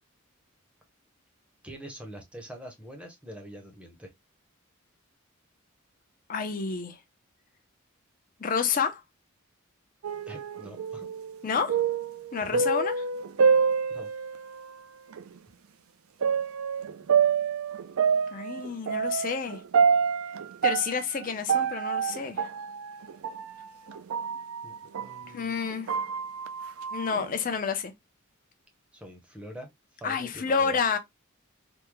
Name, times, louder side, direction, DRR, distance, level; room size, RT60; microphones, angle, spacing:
voice 1, 1.6-4.1 10.3-11.1 12.5-12.7 13.9-14.1 24.6-25.6 28.9-30.8, equal, 5° right, 0.7 m, -44 dB
voice 2, 6.3-7.0 8.4-9.0 11.4-11.8 12.3-12.9 18.3-19.6 20.6-22.4 25.3-25.9 26.9-27.9 30.0-31.0, left 6 dB, 40° left, 0.6 m, -29 dB
sound 1, 10.0-14.6 15.1-15.2 16.2-25.2 25.6-27.5, right 6 dB, 80° right, 0.4 m, -27 dB
3.5 x 2.2 x 3.0 m
head